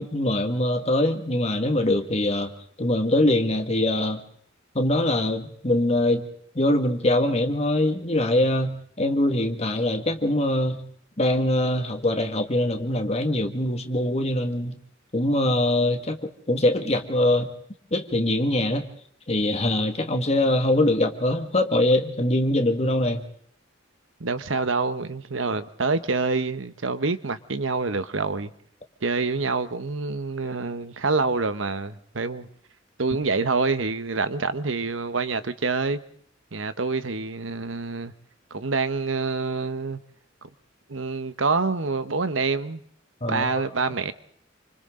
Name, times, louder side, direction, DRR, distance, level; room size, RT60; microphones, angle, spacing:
voice 1, 0.0-2.5 2.8-4.2 4.8-6.2 6.6-10.8 11.2-14.8 15.1-17.5 17.9-18.9 19.3-23.2 43.2-43.5, left 1 dB, 35° left, 1.9 m, -23 dB
voice 2, 24.2-28.5 29.0-32.5 33.0-36.0 36.5-38.1 38.5-40.0 40.4-40.5 40.9-42.8 43.3-44.1, right 4 dB, 80° right, 1.1 m, -26 dB
28.5 x 25.5 x 3.8 m
head